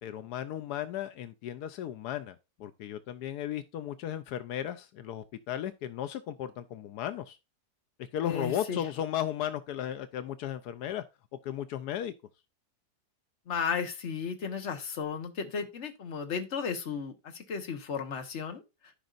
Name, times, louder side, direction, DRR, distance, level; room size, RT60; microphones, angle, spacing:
voice 1, 0.0-7.4 8.0-11.0 11.4-12.1, left 11 dB, 80° left, 1.2 m, -35 dB
voice 2, 8.2-8.8 13.5-18.6, left 6 dB, 50° left, 1.4 m, -34 dB
13.0 x 5.3 x 2.5 m
omnidirectional pair, 1.7 m